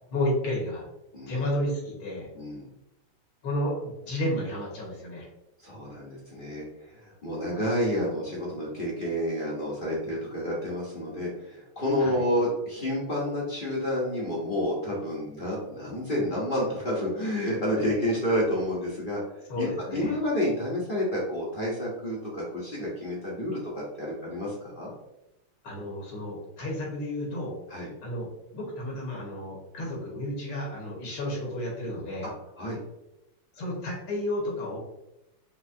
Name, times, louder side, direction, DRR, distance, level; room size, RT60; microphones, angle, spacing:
voice 1, 0.1-0.9 1.3-2.3 3.4-5.3 12.0-12.2 19.5-20.2 25.6-27.5 28.0-28.3 28.5-32.3 33.5-34.8, left 1 dB, 75° left, -3 dB, 2.2 m, -31 dB
voice 2, 2.3-2.7 5.6-19.2 19.6-24.9 27.7-27.9 32.2-32.3 32.6-32.8, left 1 dB, 40° left, -5 dB, 0.8 m, -29 dB
5.8 x 3.0 x 2.7 m, 0.90 s
omnidirectional pair, 2.4 m